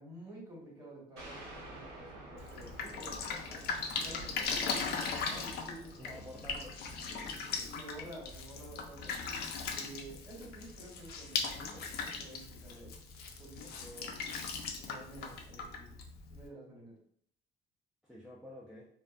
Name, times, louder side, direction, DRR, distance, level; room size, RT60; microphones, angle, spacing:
voice 1, 0.0-3.6 3.9-6.3 7.2-9.2 9.7-13.0 13.4-14.4 14.8-15.9 16.3-16.9, right 1 dB, 20° right, -4 dB, 1.1 m, -50 dB
sound 1, 1.2-10.4, right 1 dB, 90° right, 1.1 m, -53 dB
Drip, 2.4-16.5, left 5 dB, 70° left, 0.4 m, -39 dB
voice 2, 6.0-6.8 7.1-7.4 18.0-18.9, equal, 5° right, -5 dB, 0.4 m, -50 dB
2.5 x 2.2 x 2.4 m, 0.62 s
cardioid pair, 110°, 17 cm